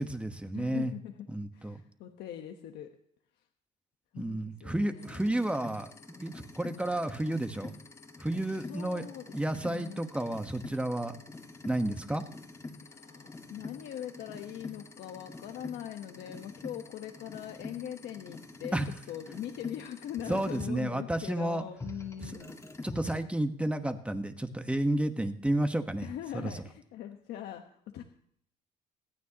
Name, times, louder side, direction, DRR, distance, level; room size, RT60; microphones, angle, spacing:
voice 1, 0.0-0.9 1.3-1.8 4.2-7.7 8.2-9.0 9.3-11.2 11.6-12.2 18.7-18.9 20.3-21.6 22.2-22.5 22.8-26.6, right 1 dB, 5° right, 8 dB, 1.2 m, -31 dB
voice 2, 0.5-1.3 1.5-2.9 4.1-5.2 8.5-9.2 9.5-10.0 12.8-18.8 19.1-22.5 26.0-28.0, left 10 dB, 75° left, 4 dB, 1.2 m, -41 dB
sound 1, 5.0-20.6 21.8-23.2, left 2 dB, 15° left, 1.8 m, -47 dB
25.5 x 9.2 x 2.9 m, 0.66 s
cardioid pair, 110°, 17 cm